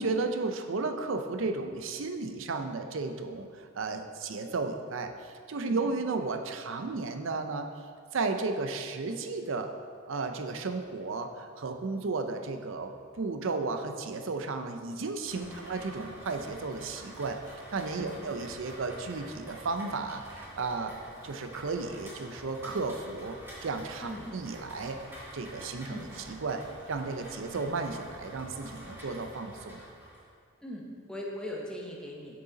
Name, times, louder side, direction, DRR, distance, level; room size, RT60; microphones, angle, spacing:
voice 1, 0.0-7.7 8.1-9.7 10.1-17.4 17.7-21.0 21.2-25.0 25.3-26.6 26.9-29.8, right 3 dB, 65° right, 7 dB, 0.5 m, -34 dB
Rain, 15.3-30.2, equal, 10° right, 1.6 m, -47 dB
voice 2, 30.6-32.4, equal, 5° left, -2 dB, 0.9 m, -40 dB
6.8 x 6.7 x 3.9 m, 2.2 s
head